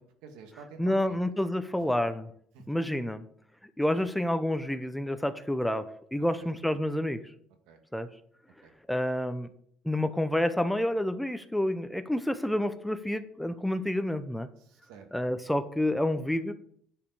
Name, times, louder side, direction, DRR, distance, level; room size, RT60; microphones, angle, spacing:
voice 1, 0.0-1.2 1.8-1.9 2.5-2.8 3.9-4.1 6.4-6.5 7.7-7.8 8.6-8.7 14.6-15.3, right 5 dB, 85° right, 5 dB, 1.8 m, -50 dB
voice 2, 0.8-2.3 2.7-3.2 3.8-7.2 7.9-8.1 8.9-9.5 9.8-14.5 15.1-16.5, left 1 dB, 5° left, 11 dB, 0.6 m, -29 dB
10.0 x 5.0 x 6.8 m, 0.63 s
cardioid pair, 125°, 0 cm